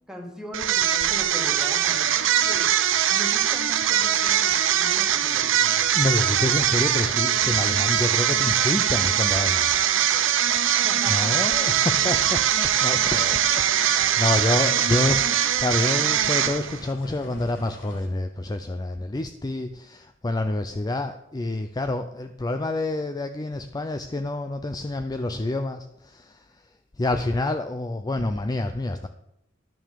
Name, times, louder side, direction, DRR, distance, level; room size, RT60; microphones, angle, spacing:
voice 1, 0.1-2.7 3.1-5.9 10.8-11.5, equal, 5° right, 0 dB, 1.9 m, -39 dB
sound 1, 0.5-16.9, right 10 dB, 70° right, 0.6 m, -22 dB
voice 2, 5.9-9.8 11.1-26.6 27.0-29.1, left 2 dB, 20° left, 8 dB, 0.4 m, -28 dB
sound 2, 13.1-13.4 13.8-15.3 15.6-15.8 16.1-18.1, left 2 dB, 70° left, 1.9 m, -46 dB
11.0 x 6.1 x 6.7 m, 0.84 s
head